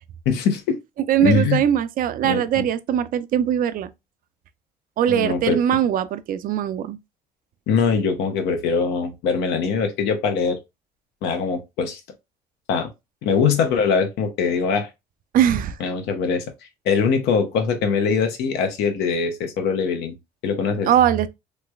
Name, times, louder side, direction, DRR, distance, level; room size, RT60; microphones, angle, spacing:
voice 1, 0.3-0.8 1.2-1.6 2.2-2.6 5.1-5.6 7.7-10.6 11.2-12.0 12.7-12.9 13.2-14.9 15.8-16.4 16.8-20.1 20.4-20.9, left 5 dB, 85° left, 0.8 m, -22 dB
voice 2, 1.1-3.9 5.0-7.0 15.3-15.8 20.9-21.3, right 10 dB, 55° right, 0.4 m, -21 dB
3.2 x 3.1 x 2.3 m
cardioid pair, 95°, 17 cm